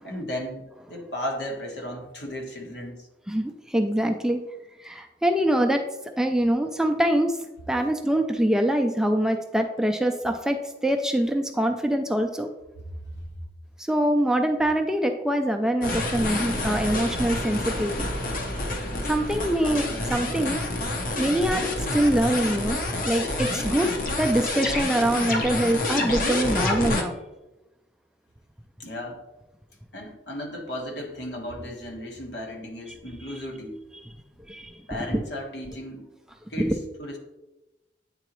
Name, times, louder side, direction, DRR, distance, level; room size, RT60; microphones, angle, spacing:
voice 1, 0.0-3.1 13.1-13.2 28.8-29.2 29.9-33.8 34.9-36.1 36.5-37.2, equal, 75° left, 0 dB, 1.4 m, -35 dB
voice 2, 3.3-4.4 4.8-5.8 6.2-7.4 7.7-12.5 13.8-18.1 19.0-20.6 21.2-21.7 21.9-22.8 23.0-23.9 24.2-27.1 32.9-33.0 34.5-34.8 35.1-35.2 36.6-36.7, right 1 dB, 5° right, 4 dB, 0.3 m, -24 dB
sound 1, 15.8-27.0, left 2 dB, 50° left, 0.8 m, -28 dB
8.9 x 3.9 x 3.0 m, 1.0 s
head